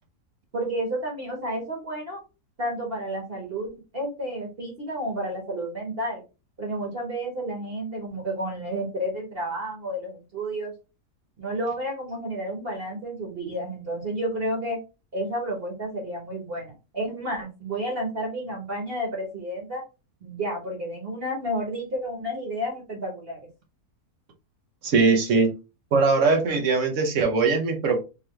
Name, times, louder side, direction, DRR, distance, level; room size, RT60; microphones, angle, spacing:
voice 1, 0.5-2.2 2.6-6.2 6.6-10.7 11.4-14.8 15.1-19.8 20.2-23.4, right 1 dB, 40° right, -1 dB, 1.4 m, -31 dB
voice 2, 24.8-25.5 25.9-28.0, right 4 dB, 60° right, 3 dB, 1.0 m, -21 dB
3.8 x 2.9 x 3.1 m, 0.29 s
omnidirectional pair, 1.6 m